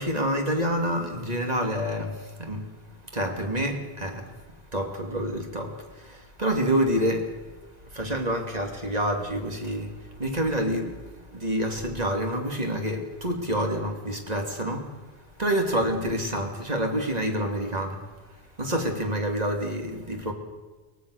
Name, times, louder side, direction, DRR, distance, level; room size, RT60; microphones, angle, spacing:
voice 1, 0.0-2.1 2.4-2.6 3.1-4.2 4.7-5.7 6.4-7.3 7.9-9.9 10.2-10.9 11.4-14.8 15.4-18.0 18.6-20.3, equal, 40° right, 2 dB, 2.9 m, -27 dB
23.0 x 18.5 x 6.6 m, 1.3 s
omnidirectional pair, 1.1 m